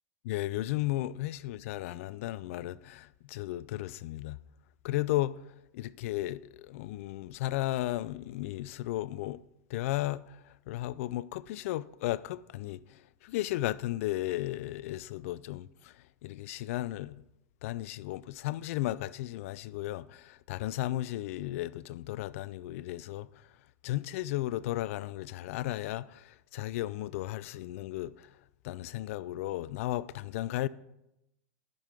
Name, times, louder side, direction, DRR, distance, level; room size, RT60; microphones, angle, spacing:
voice 1, 0.2-4.4 4.8-5.4 5.7-9.4 9.7-10.4 10.7-12.8 13.2-15.9 16.2-17.2 17.6-23.3 23.8-28.3 28.6-30.7, left 15 dB, 65° left, 0.4 m, -34 dB
11.0 x 5.3 x 6.0 m
hypercardioid pair, 115°, 8 cm